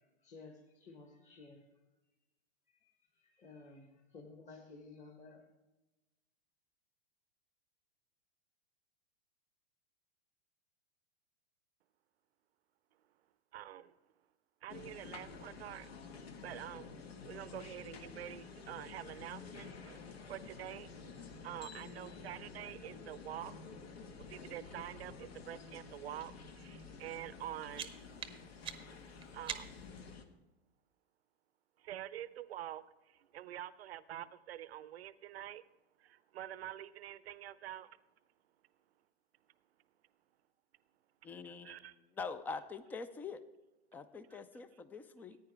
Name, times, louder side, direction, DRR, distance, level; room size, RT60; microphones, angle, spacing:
voice 1, 0.0-1.7 2.7-5.4, left 3 dB, 20° left, 0 dB, 1.6 m, -55 dB
voice 2, 13.5-13.9 14.6-15.9 16.4-16.9 17.3-20.0 20.3-23.5 24.2-27.9 29.3-29.7 31.8-35.6 36.0-37.9 41.6-42.0 44.3-44.4, right 12 dB, 75° right, 17 dB, 0.7 m, -47 dB
sound 1, 14.7-30.2, left 5 dB, 70° left, 1.5 m, -51 dB
sound 2, 27.3-30.0, right 8 dB, 15° right, 0.8 m, -46 dB
voice 3, 41.2-41.7 42.2-43.4 43.9-45.4, left 4 dB, 5° left, 13 dB, 0.3 m, -44 dB
14.5 x 9.6 x 3.4 m, 1.1 s
hypercardioid pair, 110°, 32 cm